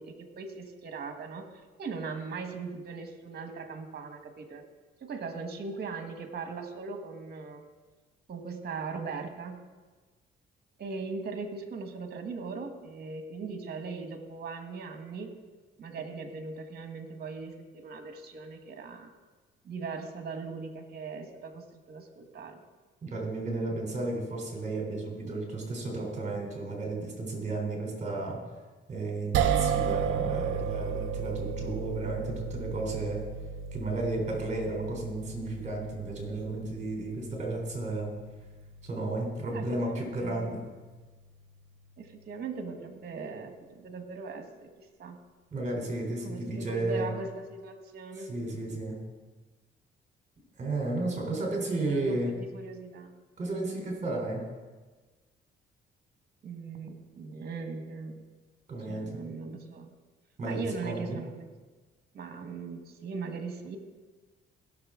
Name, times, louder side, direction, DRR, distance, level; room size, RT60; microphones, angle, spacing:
voice 1, 0.0-1.5 1.8-4.6 5.0-7.6 8.3-9.7 10.8-15.3 15.8-19.1 19.6-22.6 39.5-40.5 42.0-45.2 46.2-48.3 51.0-53.2 56.4-58.2 58.8-59.9 60.4-61.5 62.1-63.8, right 4 dB, 55° right, 6 dB, 1.5 m, -39 dB
voice 2, 23.0-28.4 28.9-33.2 33.7-38.1 38.8-40.6 45.5-47.1 48.3-49.0 50.6-52.3 53.4-54.5 58.7-59.1 60.4-61.2, right 2 dB, 35° right, 0 dB, 3.7 m, -33 dB
sound 1, 29.3-41.7, right 7 dB, 85° right, 0.7 m, -34 dB
16.5 x 6.6 x 3.8 m, 1.3 s
cardioid pair, 90°, 20 cm